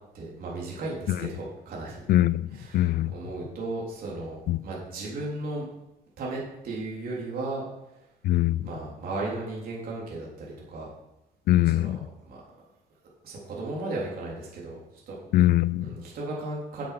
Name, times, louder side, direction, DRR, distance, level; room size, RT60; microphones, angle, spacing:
voice 1, 0.1-2.0 2.5-5.6 6.2-7.6 8.6-10.9 11.6-11.9 12.2-12.4 13.2-14.8 15.1-15.2 15.8-16.9, right 2 dB, 60° right, -4 dB, 3.7 m, -35 dB
voice 2, 2.1-3.1 4.5-4.6 8.2-8.6 11.5-12.0 15.3-15.9, left 14 dB, 65° left, 18 dB, 0.5 m, -22 dB
9.2 x 7.8 x 6.0 m, 0.92 s
cardioid pair, 110°, 17 cm